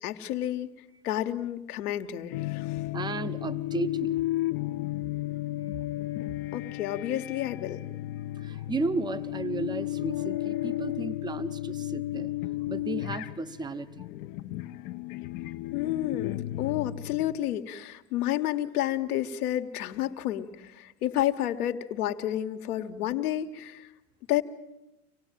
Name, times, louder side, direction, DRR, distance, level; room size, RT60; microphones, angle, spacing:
voice 1, 0.0-0.7 1.0-2.9 6.5-7.8 15.7-23.9 24.3-24.4, left 12 dB, 70° left, 6 dB, 1.7 m, -30 dB
sound 1, 2.3-17.5, left 16 dB, 45° left, 0.9 m, -33 dB
voice 2, 2.9-4.2 8.4-12.3 12.7-14.1, right 3 dB, 10° right, 12 dB, 0.9 m, -34 dB
26.5 x 18.0 x 9.2 m, 0.99 s
hypercardioid pair, 100°, 47 cm